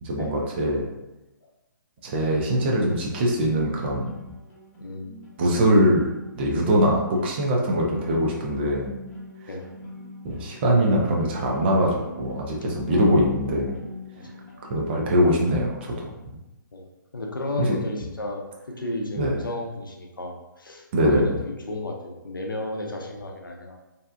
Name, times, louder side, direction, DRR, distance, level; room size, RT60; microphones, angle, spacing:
voice 1, 0.0-0.8 2.0-4.1 5.4-6.1 6.3-8.9 10.2-13.8 14.7-16.1 17.6-17.7 19.2-19.4 20.9-21.3, equal, 30° right, -1 dB, 0.5 m, -22 dB
sound 1, 3.8-15.2, left 1 dB, 45° left, 0.8 m, -43 dB
voice 2, 4.8-5.1 9.5-9.7 12.9-13.3 14.2-14.3 16.7-16.8 17.1-23.8, left 2 dB, 85° left, 1 dB, 0.5 m, -33 dB
2.6 x 2.1 x 2.4 m, 0.99 s
figure-of-eight pair, 130°, 11 cm